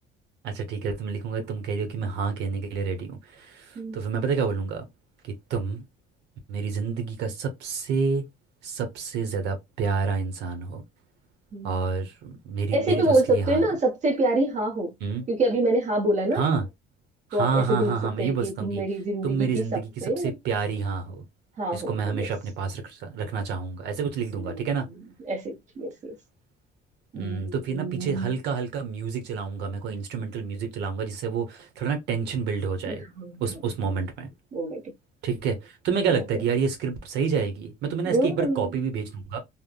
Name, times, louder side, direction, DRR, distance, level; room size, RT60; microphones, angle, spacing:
voice 1, 0.4-4.9 5.2-5.8 6.5-8.2 8.6-10.8 11.6-13.6 15.0-15.2 16.3-16.7 17.3-18.8 19.2-21.2 21.7-24.9 27.1-33.0 33.4-34.3 35.2-39.4, right 5 dB, 85° right, 0.9 m, -28 dB
voice 2, 12.7-14.9 15.3-16.4 17.3-20.3 21.6-22.3 24.4-24.8 25.3-26.1 27.1-28.3 32.8-33.6 34.5-34.8 38.0-38.8, right 1 dB, 45° right, 1.0 m, -26 dB
3.4 x 2.1 x 2.2 m
cardioid pair, 110°, 17 cm